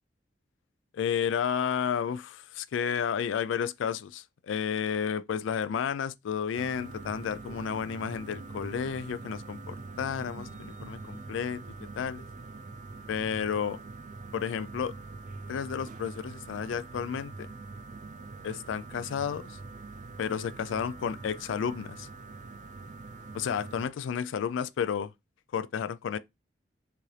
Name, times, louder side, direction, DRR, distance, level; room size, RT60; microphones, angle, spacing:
voice 1, 0.9-11.6 11.9-12.3 13.1-13.8 14.3-14.9 15.5-17.5 18.4-19.6 20.2-22.1 23.3-25.1 25.5-26.2, left 7 dB, 85° left, 0.3 m, -32 dB
sound 1, 6.5-23.9, right 3 dB, 40° right, 0.4 m, -44 dB
6.7 x 2.5 x 3.2 m
head